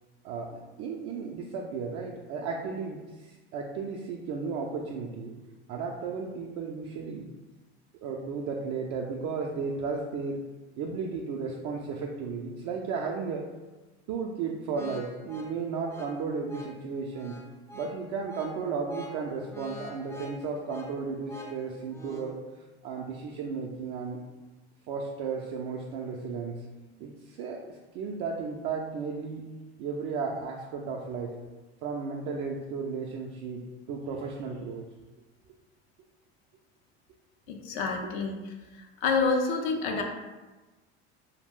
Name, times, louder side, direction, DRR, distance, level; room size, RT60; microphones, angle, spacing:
voice 1, 0.2-5.3 5.7-7.3 8.0-10.4 10.8-13.4 14.1-17.4 17.7-22.4 22.8-24.2 24.9-26.6 27.0-29.4 29.8-31.4 31.8-34.8, right 5 dB, 55° right, -1 dB, 0.4 m, -34 dB
sound 1, 14.7-22.4, equal, 10° left, 0.3 m, -46 dB
voice 2, 37.5-38.4 39.0-40.0, left 4 dB, 70° left, 2 dB, 0.5 m, -27 dB
2.4 x 2.1 x 3.5 m, 1.2 s
hypercardioid pair, 85°, 33 cm